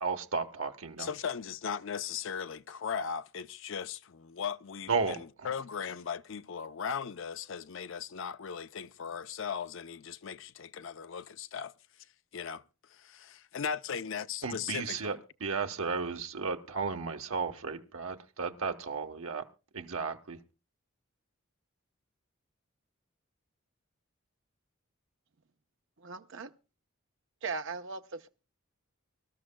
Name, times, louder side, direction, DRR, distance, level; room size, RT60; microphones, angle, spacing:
voice 1, 0.0-1.1 4.9-5.2 14.4-19.4 19.7-20.4, right 5 dB, 80° right, 1.1 m, -34 dB
voice 2, 1.0-11.7 12.3-12.6 12.9-15.2, left 7 dB, 65° left, 0.5 m, -38 dB
voice 3, 26.0-26.5 27.4-28.3, right 4 dB, 65° right, 0.7 m, -38 dB
24.5 x 13.0 x 2.2 m
head